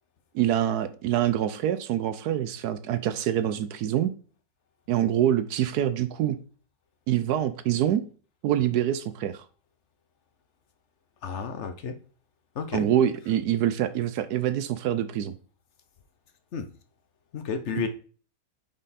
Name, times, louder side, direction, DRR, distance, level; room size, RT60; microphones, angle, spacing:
voice 1, 0.3-4.1 4.9-6.4 7.1-8.0 8.4-9.4 12.7-15.3 17.8-17.9, right 11 dB, 70° right, 13 dB, 1.0 m, -25 dB
voice 2, 11.2-11.9 12.5-12.9 16.5-16.7 17.3-17.9, left 6 dB, 55° left, 8 dB, 0.8 m, -31 dB
5.5 x 5.1 x 4.1 m, 0.40 s
omnidirectional pair, 2.0 m